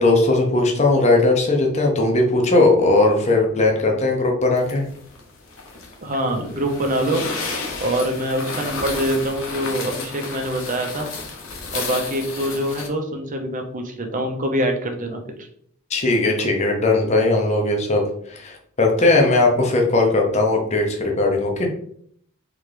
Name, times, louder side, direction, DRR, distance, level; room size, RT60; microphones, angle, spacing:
voice 1, 0.0-4.8 15.9-18.0 18.3-21.7, left 2 dB, 30° left, 1 dB, 0.8 m, -18 dB
sound 1, 4.6-12.9, left 4 dB, 65° left, 1.0 m, -32 dB
voice 2, 6.0-7.2 7.8-11.1 11.7-15.5, right 1 dB, 40° right, 3 dB, 0.7 m, -24 dB
3.8 x 3.3 x 3.3 m, 0.64 s
head